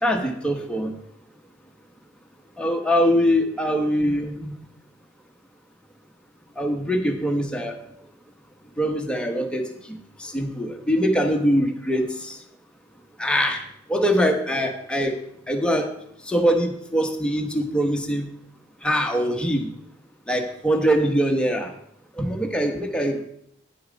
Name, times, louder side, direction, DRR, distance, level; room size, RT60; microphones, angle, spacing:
voice 1, 0.0-1.0 2.6-4.5 6.6-7.8 8.8-12.4 13.2-15.2 15.5-15.9 16.2-18.3 18.8-19.7 20.3-21.7 22.1-23.2, equal, 5° left, 3 dB, 1.0 m, -23 dB
9.5 x 6.9 x 5.1 m, 0.73 s
head